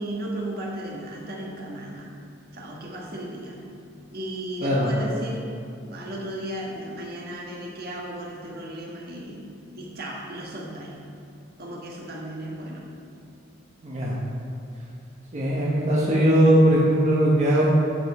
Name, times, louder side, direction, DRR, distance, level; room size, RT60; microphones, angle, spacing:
voice 1, 0.0-2.1 2.5-3.6 4.1-5.5 5.9-11.0 11.6-12.9, right 1 dB, 55° right, -2 dB, 1.4 m, -35 dB
voice 2, 13.8-14.1 15.3-17.6, right 1 dB, 35° right, -6 dB, 1.1 m, -19 dB
11.0 x 5.0 x 4.9 m, 2.7 s
head